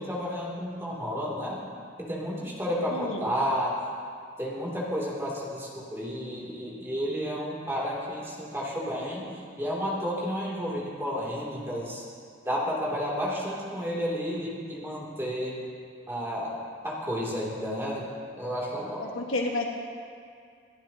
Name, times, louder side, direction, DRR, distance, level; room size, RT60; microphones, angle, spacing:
voice 1, 0.0-1.6 2.0-3.8 4.4-9.2 9.6-12.0 12.4-15.6 16.1-16.5 16.8-18.1 18.4-19.0, equal, 10° right, -5 dB, 2.8 m, -31 dB
voice 2, 2.9-3.3 19.0-19.7, left 2 dB, 80° left, 0 dB, 1.6 m, -30 dB
26.5 x 11.5 x 2.9 m, 2.3 s
head